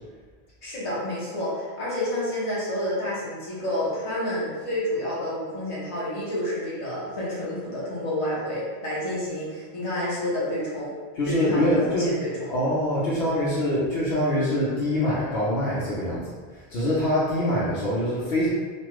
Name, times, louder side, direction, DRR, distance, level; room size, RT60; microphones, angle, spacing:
voice 1, 0.6-10.9 11.2-12.5, left 1 dB, 30° left, -8 dB, 0.9 m, -29 dB
voice 2, 11.1-12.1 12.5-18.5, left 1 dB, 65° left, -8 dB, 0.9 m, -24 dB
3.2 x 2.3 x 3.0 m, 1.5 s
omnidirectional pair, 1.1 m